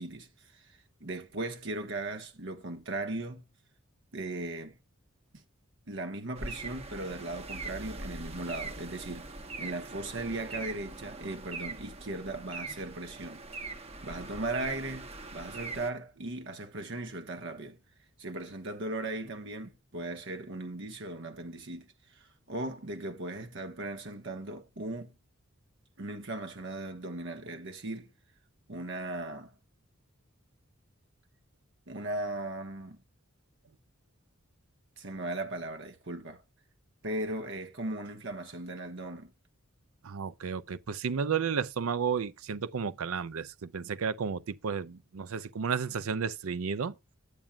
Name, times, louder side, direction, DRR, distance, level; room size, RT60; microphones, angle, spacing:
voice 1, 0.0-3.4 4.1-4.8 5.9-9.3 9.6-13.4 14.0-17.8 18.2-25.1 26.0-28.1 28.7-29.5 31.9-33.0 35.0-36.4 37.0-39.3, right 2 dB, 65° right, 1.3 m, -38 dB
sound 1, 6.3-15.9, right 3 dB, 30° right, 1.1 m, -42 dB
voice 2, 40.0-46.9, right 6 dB, 85° right, 0.5 m, -32 dB
10.0 x 8.9 x 2.4 m
head